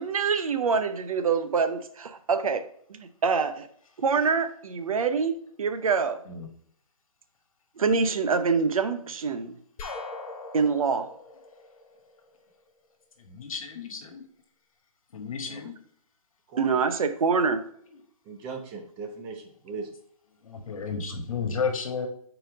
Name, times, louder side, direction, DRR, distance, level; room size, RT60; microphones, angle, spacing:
voice 1, 0.0-2.6 2.9-3.7 4.0-6.2 7.8-9.6 10.5-11.1 16.6-17.6, right 5 dB, 70° right, 9 dB, 0.8 m, -25 dB
sound 1, 9.8-12.6, left 3 dB, 25° left, 1.9 m, -41 dB
voice 2, 13.2-14.2 15.1-15.7 17.9-18.0 20.4-22.1, left 5 dB, 65° left, 5 dB, 1.5 m, -32 dB
voice 3, 18.3-19.9, right 4 dB, 15° right, 4 dB, 0.5 m, -39 dB
4.4 x 4.4 x 5.0 m, 0.62 s
hypercardioid pair, 155°, 19 cm